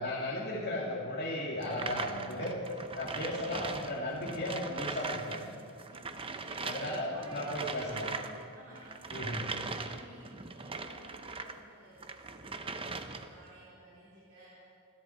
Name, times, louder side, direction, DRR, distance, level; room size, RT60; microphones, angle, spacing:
voice 1, 0.0-2.6 2.9-5.4 6.6-8.1 9.1-9.5, left 1 dB, 50° left, -5 dB, 2.4 m, -35 dB
sound 1, 1.6-5.4 5.7-11.6 12.0-13.4, right 4 dB, 25° right, 0.7 m, -40 dB
voice 2, 5.9-8.0 8.5-12.5 13.0-14.6, right 1 dB, 65° right, -8 dB, 3.8 m, -53 dB
29.5 x 11.0 x 4.5 m, 2.3 s
head